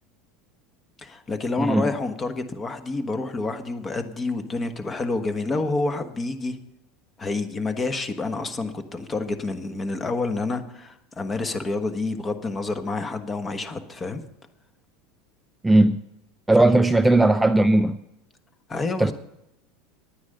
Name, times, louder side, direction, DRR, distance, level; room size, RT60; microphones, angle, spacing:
voice 1, 1.0-6.6 7.2-14.2 16.5-16.6 18.7-19.1, left 3 dB, 25° left, 1.3 m, -28 dB
voice 2, 15.6-16.0 16.5-18.0 19.0-19.1, right 2 dB, 5° right, 0.5 m, -17 dB
10.0 x 9.5 x 6.7 m
supercardioid pair, 105°, 0 cm